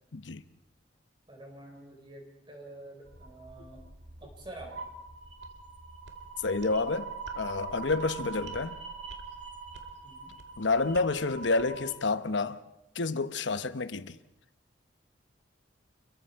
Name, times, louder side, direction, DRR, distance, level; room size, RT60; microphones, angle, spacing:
voice 1, 1.3-3.8 4.2-4.7 10.0-10.3, right 1 dB, 25° right, 4.7 m, -47 dB
sound 1, 3.0-11.9, right 4 dB, 75° right, 2.4 m, -43 dB
voice 2, 6.4-7.1 7.4-8.8 10.6-12.6 12.9-14.1, left 3 dB, 80° left, 1.0 m, -29 dB
28.5 x 22.0 x 4.7 m
head